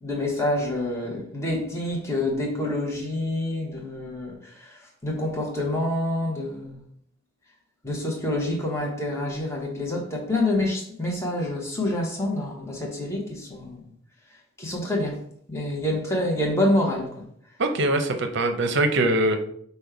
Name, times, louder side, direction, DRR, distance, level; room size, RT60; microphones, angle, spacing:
voice 1, 0.0-6.8 7.8-13.8 14.6-15.2 15.5-17.2, left 1 dB, 15° left, -2 dB, 0.9 m, -27 dB
voice 2, 17.6-19.4, right 2 dB, 55° right, 7 dB, 0.6 m, -22 dB
5.2 x 2.2 x 4.6 m, 0.65 s
head